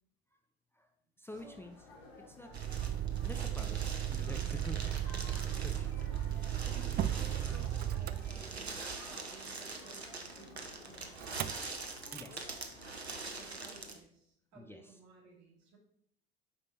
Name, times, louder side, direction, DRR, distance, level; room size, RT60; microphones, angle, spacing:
voice 1, 0.7-1.8 2.2-2.5 3.2-4.8 5.6-6.5 12.1-12.6 14.6-14.8, left 1 dB, 5° left, 6 dB, 0.7 m, -48 dB
sound 1, 1.3-13.9, left 2 dB, 70° left, 1.9 m, -55 dB
voice 2, 1.3-1.6 2.4-2.7 6.4-11.6 13.4-15.8, right 3 dB, 60° right, -1 dB, 2.8 m, -57 dB
Motor vehicle (road), 2.5-8.9 11.2-11.6 12.0-12.3, right 11 dB, 30° right, 0.5 m, -35 dB
sound 2, 2.5-14.0, right 3 dB, 90° right, 0.8 m, -45 dB
8.5 x 5.4 x 4.2 m, 0.69 s
figure-of-eight pair, 65°, 31 cm